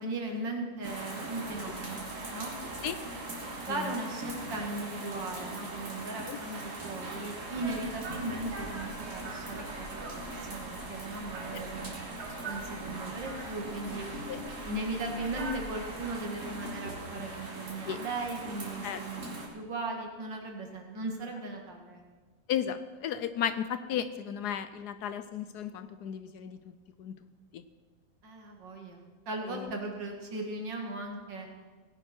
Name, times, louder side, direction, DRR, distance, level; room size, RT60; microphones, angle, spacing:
voice 1, 0.0-2.5 3.4-11.9 12.4-14.1 14.6-19.3 19.5-22.0 28.2-31.5, right 2 dB, 75° right, 2 dB, 2.7 m, -38 dB
sound 1, 0.8-19.5, right 2 dB, 60° right, 3.0 m, -41 dB
sound 2, 7.5-16.2, right 2 dB, 40° right, 1.6 m, -44 dB
voice 2, 22.5-26.7 27.0-27.2 27.5-27.6 29.5-29.7, left 9 dB, 70° left, 12 dB, 1.1 m, -34 dB
18.0 x 10.5 x 4.5 m, 1.4 s
omnidirectional pair, 2.0 m